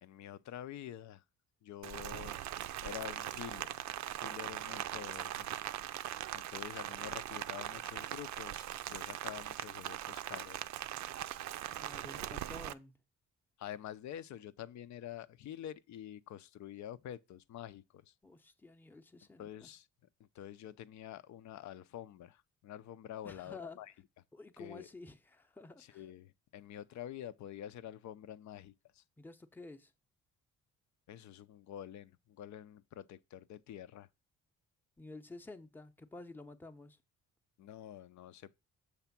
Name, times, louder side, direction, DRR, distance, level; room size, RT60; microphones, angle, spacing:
voice 1, 0.0-1.2 1.6-2.4 2.8-3.9 4.2-5.5 6.3-10.7 13.6-18.1 19.4-19.9 20.2-23.9 24.6-24.9 25.8-29.0 31.1-34.1 37.6-38.6, left 11 dB, 70° left, 0.6 m, -47 dB
Rain, 1.8-12.7, right 12 dB, 65° right, 0.5 m, -41 dB
voice 2, 11.7-13.0 18.2-19.7 23.2-23.8 24.3-26.0 29.2-29.9 35.0-37.0, left 2 dB, 5° left, 0.7 m, -51 dB
7.1 x 3.3 x 5.8 m
cardioid pair, 90°, 30 cm